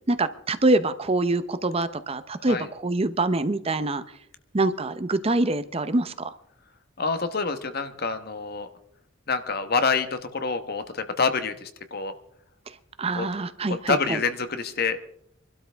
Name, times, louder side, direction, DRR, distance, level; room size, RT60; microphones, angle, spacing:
voice 1, 0.1-4.0 4.5-6.1 13.0-14.2, right 2 dB, 30° right, 12 dB, 0.7 m, -25 dB
voice 2, 7.0-8.7 9.3-12.1 13.1-13.3 13.7-15.0, left 4 dB, 50° left, 10 dB, 1.2 m, -27 dB
25.0 x 12.5 x 3.5 m, 0.70 s
head